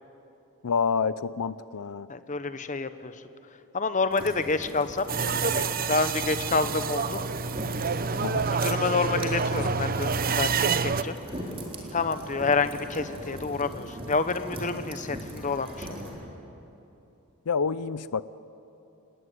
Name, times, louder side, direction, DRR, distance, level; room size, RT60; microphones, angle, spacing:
voice 1, 0.6-2.1 8.2-8.5 17.5-18.2, left 5 dB, 90° left, 16 dB, 0.6 m, -28 dB
voice 2, 2.1-3.2 3.7-5.1 5.4-7.2 8.5-11.1 11.9-15.9, left 4 dB, 35° left, 11 dB, 1.1 m, -28 dB
sound 1, 4.1-16.1, equal, 25° right, 3.8 m, -41 dB
sound 2, 5.1-11.0, right 5 dB, 40° right, 0.7 m, -28 dB
sound 3, 7.4-16.3, equal, ahead, 6.6 m, -48 dB
29.5 x 19.0 x 9.5 m, 2.9 s
head